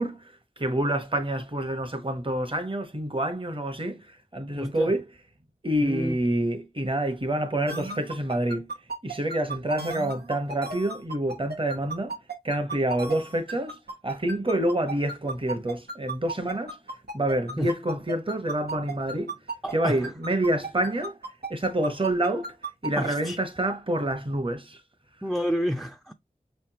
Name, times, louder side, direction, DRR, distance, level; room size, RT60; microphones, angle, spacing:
voice 1, 0.0-5.0 5.6-8.7 9.0-12.1 12.4-13.8 14.0-16.8 17.1-19.4 19.7-21.2 21.5-22.5 22.8-24.8, right 1 dB, 35° right, 1.1 m, -27 dB
voice 2, 4.6-4.9 5.8-6.2 17.6-17.7 19.6-20.1 23.0-23.4 25.2-26.1, equal, ahead, 0.4 m, -29 dB
sound 1, 7.7-19.7 20.0-23.1, right 3 dB, 90° right, 1.2 m, -34 dB
5.4 x 3.4 x 2.8 m
wide cardioid pair, 60°, 16 cm